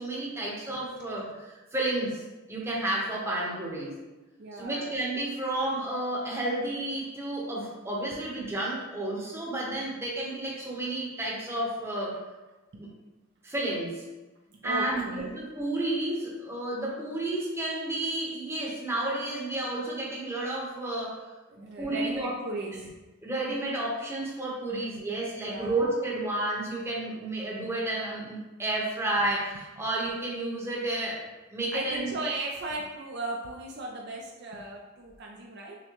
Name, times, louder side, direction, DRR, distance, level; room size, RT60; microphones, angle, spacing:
voice 1, 0.0-2.2 2.5-3.9 4.5-12.2 12.8-12.9 13.4-14.1 14.6-21.3 21.5-22.3 23.2-31.2 31.5-32.1, right 1 dB, 10° right, -5 dB, 0.8 m, -31 dB
voice 2, 4.4-4.9 12.7-12.8 14.6-15.3 21.6-22.9 24.7-24.8 25.4-25.7 31.7-35.8, right 2 dB, 55° right, 0 dB, 0.4 m, -36 dB
5.9 x 2.1 x 3.0 m, 1.1 s
head